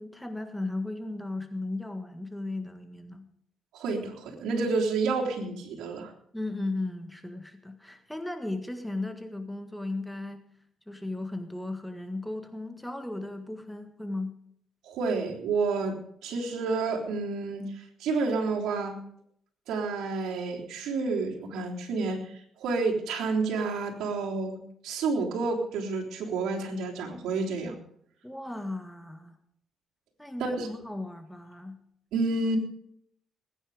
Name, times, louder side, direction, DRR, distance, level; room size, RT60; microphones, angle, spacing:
voice 1, 0.0-3.3 6.3-10.4 10.9-14.3 28.2-29.4 30.2-31.8, left 2 dB, 5° left, 7 dB, 1.6 m, -36 dB
voice 2, 3.7-6.1 14.8-16.0 16.2-19.0 19.7-27.8 30.4-30.7 32.1-32.6, right 4 dB, 85° right, -2 dB, 3.6 m, -30 dB
20.0 x 9.9 x 5.0 m, 0.68 s
cardioid pair, 90°, 0 cm